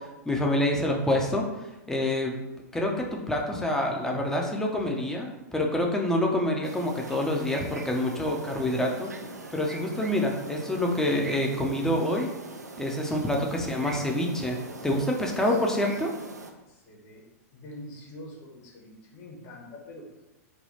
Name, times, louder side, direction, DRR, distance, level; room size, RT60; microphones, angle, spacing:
voice 1, 0.0-1.5 1.9-2.4 2.7-9.1 9.5-12.3 12.8-16.1, left 1 dB, 5° left, 0 dB, 0.5 m, -27 dB
sound 1, 6.6-16.5, right 3 dB, 85° right, 0.4 m, -41 dB
voice 2, 13.5-13.9 15.4-15.6 16.7-17.3 17.5-20.2, left 1 dB, 40° left, -1 dB, 1.0 m, -45 dB
3.4 x 2.3 x 4.0 m, 0.99 s
figure-of-eight pair, 100°, 9 cm